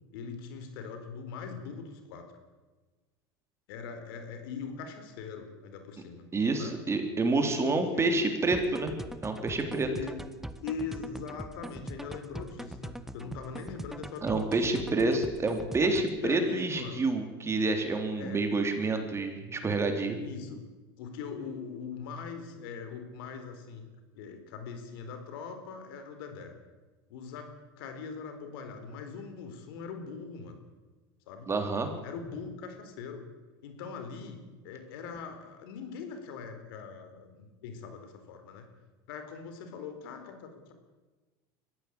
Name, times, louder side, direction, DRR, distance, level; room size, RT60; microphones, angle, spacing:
voice 1, 0.1-2.3 3.7-6.3 6.6-6.7 7.6-8.1 9.7-10.2 10.6-14.8 15.8-17.1 18.2-18.4 20.2-20.7 21.0-23.8 24.1-26.5 27.1-27.5 27.8-30.6 31.3-31.5 32.0-33.3 33.6-38.7 39.1-40.7, left 5 dB, 75° left, 7 dB, 4.3 m, -41 dB
voice 2, 6.3-8.9 9.2-9.9 14.2-20.2 31.5-31.9, right 3 dB, 20° right, 5 dB, 3.8 m, -28 dB
sound 1, 8.5-16.2, right 1 dB, 5° right, 1.4 m, -42 dB
22.0 x 15.5 x 8.8 m, 1.3 s
supercardioid pair, 100°, 12 cm